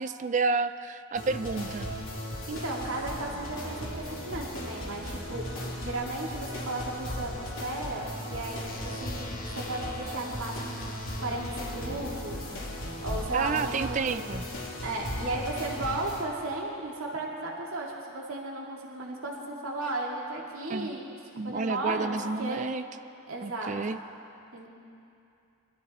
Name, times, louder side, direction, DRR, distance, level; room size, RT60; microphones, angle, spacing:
voice 1, 0.0-1.9 13.3-14.4 20.7-21.0 21.4-22.8 23.4-24.0, right 4 dB, 35° right, 11 dB, 0.4 m, -30 dB
sound 1, 1.1-16.2, left 1 dB, 75° left, 2.9 m, -37 dB
voice 2, 2.5-10.8 11.2-12.4 13.0-14.3 14.8-22.6 23.3-24.0 24.5-24.7, right 2 dB, 80° right, -2 dB, 2.2 m, -35 dB
sound 2, 8.7-14.7, left 3 dB, 45° left, 1.3 m, -49 dB
22.0 x 13.0 x 4.2 m, 2.6 s
head